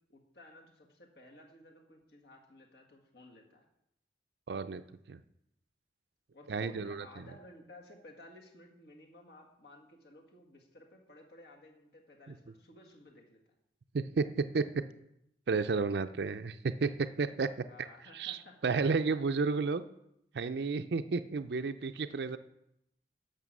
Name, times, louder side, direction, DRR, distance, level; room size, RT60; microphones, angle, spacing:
voice 1, 0.1-3.6 6.3-13.4 17.7-18.8 19.1-19.2, left 1 dB, 65° left, 1 dB, 1.9 m, -55 dB
voice 2, 4.5-5.2 6.5-7.3 13.9-14.6 15.5-17.5 18.1-19.8 20.3-22.4, right 4 dB, 70° right, 10 dB, 0.5 m, -32 dB
11.0 x 6.7 x 6.1 m, 0.81 s
head